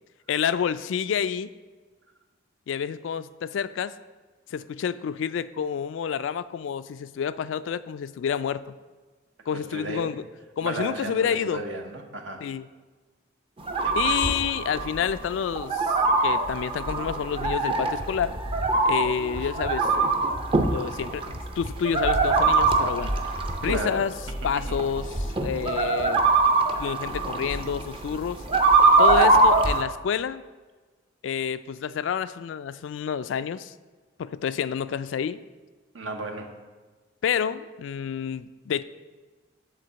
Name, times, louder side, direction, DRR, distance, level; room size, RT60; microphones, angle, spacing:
voice 1, 0.3-1.5 2.7-3.9 4.5-8.8 9.5-10.2 10.6-11.6 12.4-12.7 14.0-16.0 16.2-18.3 18.9-19.9 20.7-23.4 23.6-24.1 24.4-26.2 26.8-28.4 29.0-30.4 31.2-33.7 34.2-35.4 37.2-38.8, left 7 dB, 75° left, 15 dB, 0.3 m, -29 dB
voice 2, 9.5-10.2 10.6-12.4 13.8-14.4 19.3-19.5 23.6-24.0 24.7-24.8 35.9-36.6, right 2 dB, 75° right, 4 dB, 1.0 m, -34 dB
sound 1, 13.6-29.8, right 3 dB, 25° right, 0.6 m, -23 dB
sound 2, 18.3-18.7 19.3-19.7 20.3-20.7 21.3-21.7 22.3-22.7, equal, 50° right, 1.0 m, -37 dB
7.9 x 3.8 x 6.8 m, 1.3 s
head